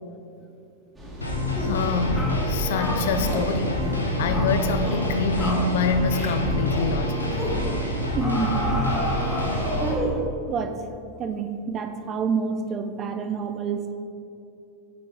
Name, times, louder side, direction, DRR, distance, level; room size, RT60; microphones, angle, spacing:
sound 1, 0.9-9.8, right 1 dB, 10° right, 1.3 m, -36 dB
sound 2, 1.2-9.9, left 1 dB, 80° left, 0.9 m, -27 dB
voice 1, 1.6-3.8 4.2-7.4, left 4 dB, 55° left, 9 dB, 0.4 m, -26 dB
sound 3, 1.6-1.8 2.2-2.4 2.8-3.5 3.8-4.0 4.3-4.5 4.8-5.1 5.4-5.7 6.1-6.4 6.7-6.9 7.4-7.6 8.2-10.3, equal, 10° left, 1.1 m, -31 dB
voice 2, 8.1-8.8 9.2-9.3 9.8-10.8 11.2-13.9, right 5 dB, 30° right, 8 dB, 0.5 m, -28 dB
6.9 x 5.2 x 3.8 m, 2.5 s
figure-of-eight pair, 90°, 0 cm